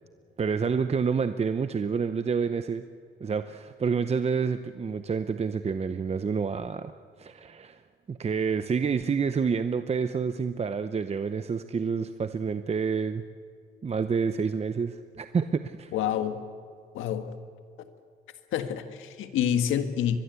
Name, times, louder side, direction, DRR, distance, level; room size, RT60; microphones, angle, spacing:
voice 1, 0.4-2.9 3.2-6.9 7.2-7.8 8.1-13.2 13.8-15.9, right 5 dB, 30° right, 10 dB, 0.8 m, -28 dB
voice 2, 15.9-16.4 16.9-17.3 18.5-20.2, left 9 dB, 85° left, 8 dB, 1.6 m, -27 dB
23.0 x 21.5 x 8.2 m, 2.2 s
cardioid pair, 90°, 20 cm